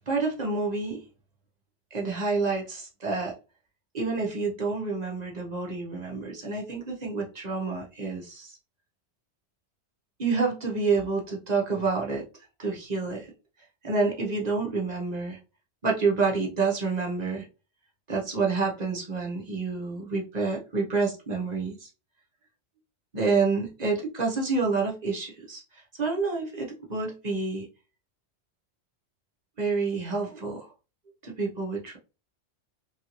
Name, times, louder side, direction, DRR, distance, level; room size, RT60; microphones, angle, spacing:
voice 1, 0.1-1.0 1.9-3.3 3.9-8.6 10.2-12.2 12.6-13.3 13.8-15.4 15.8-17.5 18.1-21.9 23.1-27.7 29.6-30.7 31.2-32.0, right 4 dB, 45° right, -1 dB, 0.7 m, -28 dB
3.1 x 2.6 x 2.9 m, 0.33 s
omnidirectional pair, 1.2 m